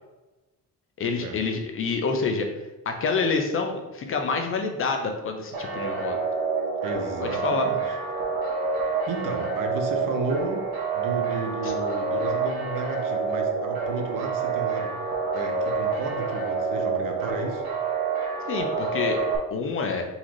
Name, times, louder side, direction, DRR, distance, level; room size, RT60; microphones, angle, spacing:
voice 1, 1.0-2.5 2.9-6.2 7.2-7.7 11.6-11.7 18.5-20.1, left 4 dB, 40° left, 4 dB, 0.4 m, -27 dB
sound 1, 5.5-19.4, right 4 dB, 80° right, 1.2 m, -28 dB
voice 2, 6.8-8.0 9.1-10.7 10.9-14.9 15.3-17.6, right 3 dB, 65° right, 4 dB, 0.8 m, -33 dB
4.0 x 3.7 x 3.1 m, 1.1 s
cardioid pair, 170°, 35 cm